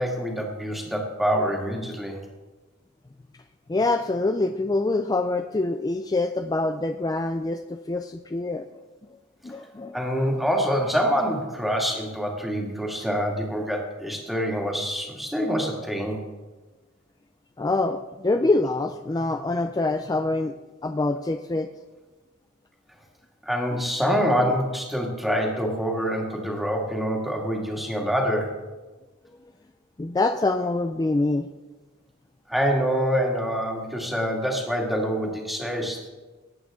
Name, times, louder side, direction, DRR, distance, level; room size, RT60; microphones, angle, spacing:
voice 1, 0.0-2.2 9.9-16.2 23.4-28.6 32.5-36.1, equal, ahead, 0 dB, 2.1 m, -26 dB
voice 2, 3.7-8.7 9.4-10.0 10.4-10.5 17.6-20.5 20.8-21.7 30.0-31.5, left 2 dB, 20° left, 7 dB, 0.4 m, -25 dB
19.0 x 8.6 x 3.8 m, 1.2 s
head